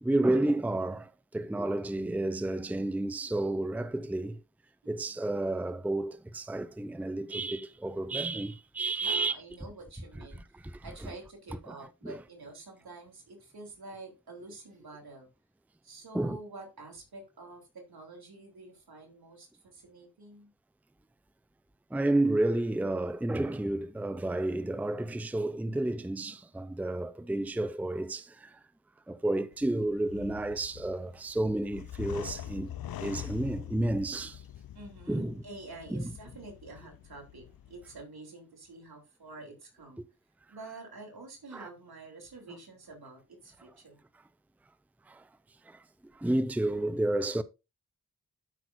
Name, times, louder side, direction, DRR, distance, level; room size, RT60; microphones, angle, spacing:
voice 1, 0.0-4.4 4.9-9.3 10.3-10.8 11.7-11.8 12.0-12.2 16.1-16.4 21.9-28.6 29.1-32.7 33.0-34.4 35.1-35.4 35.9-36.0 41.5-41.7 45.1-45.2 45.7-45.8 46.1-47.4, right 2 dB, 5° right, 0.6 m, -31 dB
voice 2, 4.8-5.2 9.0-10.4 10.8-15.3 15.8-20.5 34.7-40.0 40.5-44.0, right 3 dB, 75° right, 3.3 m, -48 dB
sound 1, 29.5-38.0, left 11 dB, 70° left, 0.5 m, -44 dB
12.5 x 6.0 x 2.6 m
cardioid pair, 50°, 37 cm